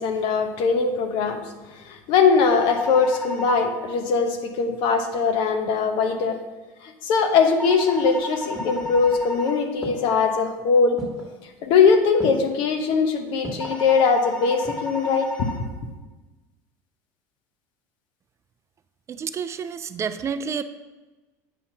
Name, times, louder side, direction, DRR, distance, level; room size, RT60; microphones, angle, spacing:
voice 1, 0.0-1.4 1.9-6.4 6.8-11.0 11.6-15.5, left 5 dB, 65° left, 5 dB, 0.9 m, -21 dB
sound 1, 2.4-3.6 7.6-9.6 13.6-15.6, left 2 dB, 15° left, 1.6 m, -33 dB
sound 2, 8.0-9.4 9.8-10.4 11.0-11.4 12.2-12.6 13.4-13.9 14.4-15.0 15.3-15.4, equal, 5° right, 1.6 m, -37 dB
voice 2, 19.1-20.6, right 6 dB, 30° right, 11 dB, 0.4 m, -29 dB
8.3 x 2.9 x 5.6 m, 1.2 s
supercardioid pair, 105°, 9 cm